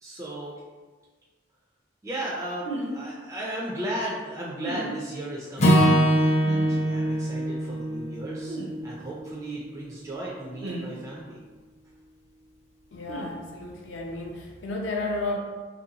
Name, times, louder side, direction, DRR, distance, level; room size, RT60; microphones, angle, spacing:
voice 1, 0.0-0.6 2.0-8.6 8.8-11.4, right 1 dB, 15° right, -5 dB, 0.3 m, -35 dB
sound 1, 2.6-2.9 4.6-5.0 6.4-6.7 8.5-8.7 10.6-11.0 13.1-13.3, right 1 dB, 75° right, 0.5 m, -34 dB
Acoustic guitar / Strum, 5.6-9.9, equal, 35° left, 0.6 m, -23 dB
voice 2, 12.9-15.4, left 2 dB, 80° left, 0 dB, 0.5 m, -32 dB
3.0 x 2.6 x 2.7 m, 1.3 s
head